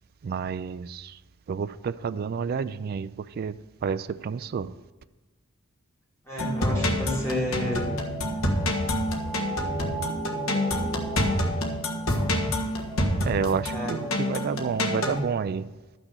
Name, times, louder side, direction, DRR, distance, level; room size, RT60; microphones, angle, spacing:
voice 1, 0.2-1.2 1.5-4.7 13.2-15.7, right 6 dB, 45° right, 0.3 m, -30 dB
voice 2, 6.3-8.1 13.7-13.9, equal, 15° left, 3.7 m, -30 dB
sound 1, 6.4-15.2, equal, 70° left, 1.5 m, -27 dB
12.0 x 6.1 x 6.3 m
head